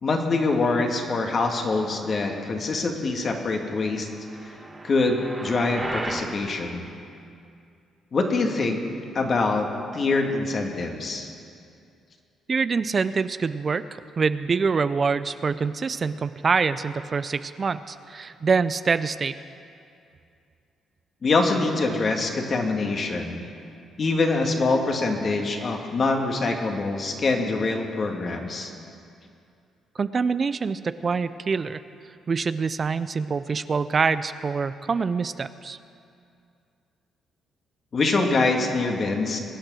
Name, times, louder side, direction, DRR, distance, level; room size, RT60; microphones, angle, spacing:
voice 1, 0.0-4.1 4.4-4.6 4.8-6.9 8.1-8.8 9.1-9.7 9.9-11.3 21.2-23.4 24.0-28.7 37.9-39.4, left 3 dB, 45° left, 3 dB, 2.0 m, -24 dB
sound 1, 4.1-6.3, right 2 dB, 20° right, 1.8 m, -34 dB
voice 2, 12.5-13.8 14.2-19.3 30.0-31.8 32.3-35.8, right 5 dB, 40° right, 13 dB, 0.5 m, -25 dB
22.5 x 8.9 x 6.3 m, 2.5 s
cardioid pair, 75°, 0 cm